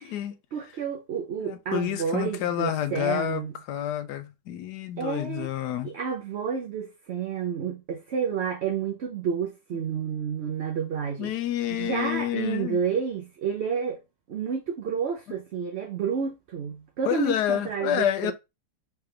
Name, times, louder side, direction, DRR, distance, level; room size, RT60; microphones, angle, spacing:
voice 1, 0.0-0.3 1.4-5.9 9.7-9.8 11.2-12.8 17.0-18.3, left 11 dB, 90° left, 1.2 m, -29 dB
voice 2, 0.5-3.5 5.0-5.5 5.8-11.3 11.7-14.0 14.3-18.3, right 7 dB, 55° right, 0.8 m, -30 dB
4.7 x 3.4 x 3.2 m
omnidirectional pair, 1.7 m